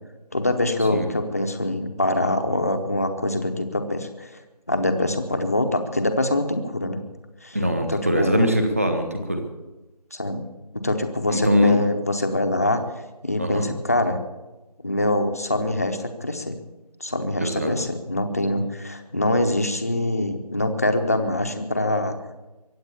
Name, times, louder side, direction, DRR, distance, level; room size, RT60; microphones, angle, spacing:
voice 1, 0.3-4.3 4.7-7.0 7.4-7.6 7.9-8.5 10.1-10.4 10.7-12.8 13.2-14.2 14.8-16.6 17.0-22.2, left 1 dB, 25° left, 6 dB, 0.9 m, -24 dB
voice 2, 7.5-9.4 11.3-11.8 13.4-13.7 17.4-17.7, left 1 dB, 20° right, 6 dB, 1.1 m, -21 dB
23.0 x 8.1 x 7.0 m, 1.1 s
figure-of-eight pair, 175°, 21 cm